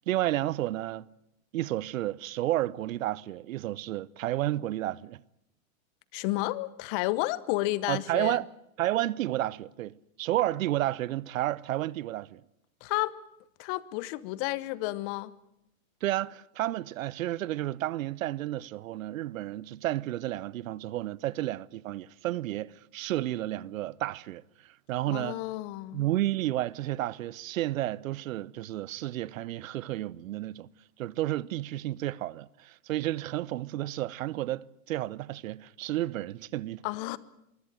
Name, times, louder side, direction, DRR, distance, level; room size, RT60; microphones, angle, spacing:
voice 1, 0.1-1.1 1.5-5.2 7.9-8.5 8.8-12.4 16.0-25.4 25.9-30.7 31.0-36.8, right 15 dB, 65° right, 0.8 m, -31 dB
voice 2, 6.1-8.4 12.8-13.2 13.6-15.3 25.1-26.1 36.8-37.2, left 19 dB, 40° left, 1.0 m, -31 dB
23.5 x 16.5 x 8.9 m
hypercardioid pair, 135°, 42 cm